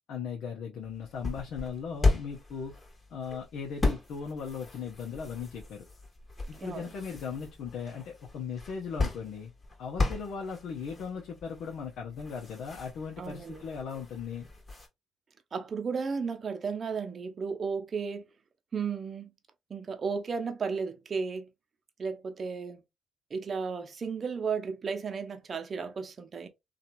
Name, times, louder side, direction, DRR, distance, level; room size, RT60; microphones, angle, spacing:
voice 1, 0.1-2.8 3.1-5.9 6.5-9.5 9.8-14.5, left 6 dB, 70° left, 0.7 m, -38 dB
sound 1, 0.8-14.9, left 3 dB, 30° left, 1.2 m, -35 dB
voice 2, 6.6-6.9 13.2-13.6 15.5-18.3 18.7-19.3 19.7-21.5 22.0-22.8 23.3-26.5, right 5 dB, 45° right, 0.6 m, -34 dB
2.9 x 2.4 x 2.5 m
supercardioid pair, 60°, 0 cm